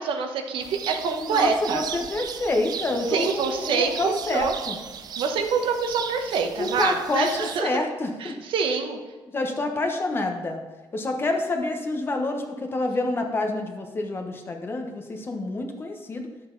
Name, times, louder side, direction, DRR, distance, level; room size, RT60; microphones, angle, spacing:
voice 1, 0.0-1.8 3.1-4.5 5.2-7.7 8.2-9.0, right 5 dB, 75° right, 4 dB, 1.1 m, -26 dB
sound 1, 0.6-7.6, right 7 dB, 50° right, 0.5 m, -36 dB
voice 2, 1.2-4.8 6.6-8.4 9.3-10.6 10.9-16.3, left 2 dB, 25° left, 4 dB, 1.1 m, -27 dB
11.0 x 7.7 x 4.0 m, 1.2 s
cardioid pair, 170°, 9 cm